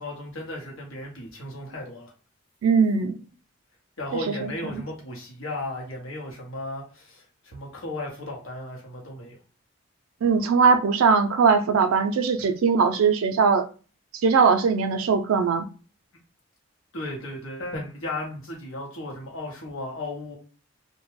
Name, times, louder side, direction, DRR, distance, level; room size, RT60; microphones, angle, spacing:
voice 1, 0.0-2.1 4.0-9.4 12.4-12.5 16.9-20.4, left 2 dB, 75° left, 0.9 m, -35 dB
voice 2, 2.6-3.1 4.3-4.8 10.2-13.7 14.2-15.7, right 5 dB, 85° right, 0.4 m, -20 dB
2.2 x 2.1 x 3.1 m
head